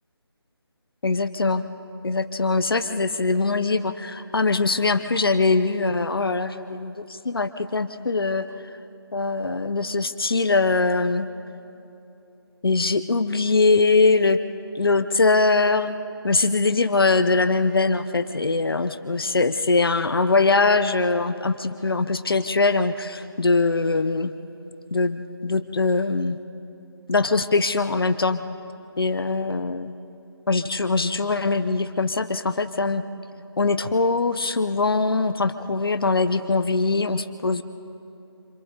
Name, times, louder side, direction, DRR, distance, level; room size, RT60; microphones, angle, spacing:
voice 1, 1.0-1.6 2.0-8.5 9.1-11.3 12.6-14.4 14.7-15.9 16.2-24.3 24.9-26.4 27.1-28.4 29.0-29.9 30.5-33.0 33.6-37.6, left 3 dB, 60° left, 11 dB, 0.9 m, -22 dB
28.0 x 27.0 x 4.0 m, 2.8 s
figure-of-eight pair, 170°, 14 cm